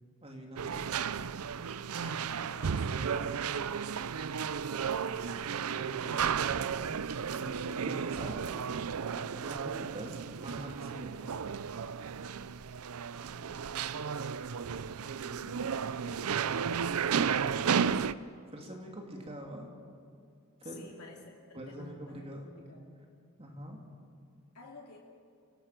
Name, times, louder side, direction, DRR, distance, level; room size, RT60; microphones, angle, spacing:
voice 1, 0.2-0.9 4.9-6.6 7.3-8.4 9.1-11.3 18.5-19.7 20.6-20.9 21.5-22.4 23.4-23.8, equal, 25° right, 1 dB, 2.7 m, -45 dB
sound 1, 0.6-18.1, right 7 dB, 75° right, 0.5 m, -33 dB
voice 2, 1.9-4.2 13.3-16.6 20.6-23.1 24.5-25.0, left 2 dB, 80° left, -1 dB, 2.7 m, -53 dB
29.5 x 17.5 x 6.0 m, 2.2 s
head